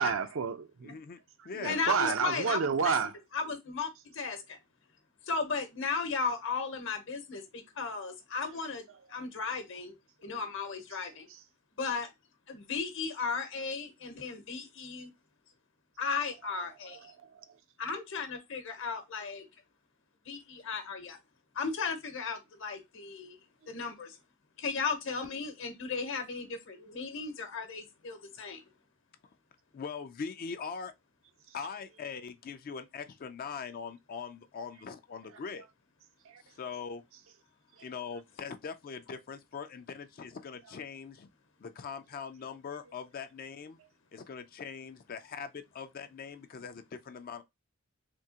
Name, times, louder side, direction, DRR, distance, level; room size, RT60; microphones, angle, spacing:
voice 1, 0.0-1.0 1.4-3.1 10.2-10.4 11.3-11.4 16.9-17.4 36.3-36.4 37.8-37.9, right 6 dB, 65° right, 0.5 m, -31 dB
voice 2, 0.8-1.2 1.4-2.2 29.7-30.9 31.5-35.7 36.5-37.0 37.8-41.3 41.6-43.8 44.1-47.4, left 6 dB, 45° left, 0.4 m, -41 dB
voice 3, 1.6-2.9 3.3-4.6 5.3-8.8 9.1-9.9 10.2-11.3 11.8-12.1 12.5-15.1 16.0-17.0 17.8-19.5 20.3-21.2 21.5-23.4 23.7-24.2 24.6-28.6, left 5 dB, 65° left, 0.9 m, -35 dB
3.5 x 2.8 x 2.8 m
head